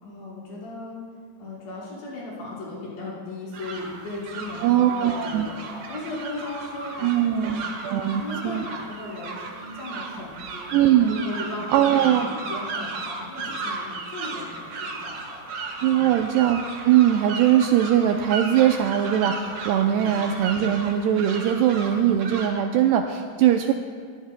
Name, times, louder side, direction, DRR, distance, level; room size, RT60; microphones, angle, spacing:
voice 1, 0.0-1.0 1.4-7.6 7.9-10.8 11.1-16.1 19.9-20.2, left 2 dB, 70° left, -7 dB, 6.7 m, -37 dB
sound 1, 3.5-22.5, right 3 dB, 60° right, 2.0 m, -35 dB
voice 2, 4.6-5.5 7.0-8.7 10.7-11.2 11.7-12.3 15.8-23.7, right 10 dB, 85° right, 5 dB, 2.4 m, -21 dB
23.0 x 15.0 x 2.2 m, 2.1 s
omnidirectional pair, 5.2 m